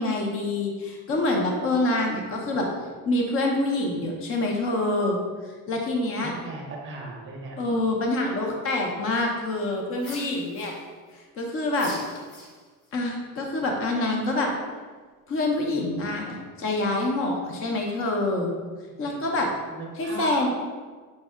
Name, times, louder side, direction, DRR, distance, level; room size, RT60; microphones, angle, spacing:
voice 1, 0.0-2.7 3.1-5.2 5.7-6.3 7.6-10.8 11.1-11.9 12.9-14.5 15.3-18.5 19.0-19.5 20.0-20.5, left 2 dB, 30° left, 1 dB, 0.6 m, -26 dB
voice 2, 6.2-7.6 19.0-19.2 19.7-20.5, right 3 dB, 30° right, 0 dB, 0.8 m, -37 dB
sound 1, 10.0-11.1 11.7-12.9, left 2 dB, 75° left, 1.3 m, -42 dB
5.3 x 2.0 x 3.5 m, 1.5 s
supercardioid pair, 125°, 42 cm